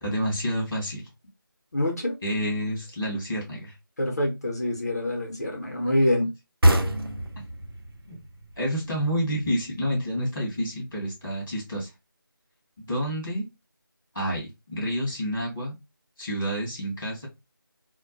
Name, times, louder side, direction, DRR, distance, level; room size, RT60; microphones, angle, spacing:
voice 1, 0.0-1.1 2.2-3.7 8.1-8.2 8.6-11.9 12.8-13.5 14.1-15.7 16.2-17.3, equal, 5° left, 0.5 m, -29 dB
voice 2, 1.7-2.2 4.0-6.3, left 1 dB, 45° left, 0.7 m, -25 dB
sound 1, 6.6-10.0, right 1 dB, 85° right, 0.6 m, -25 dB
2.1 x 2.1 x 2.7 m
figure-of-eight pair, 175°, 12 cm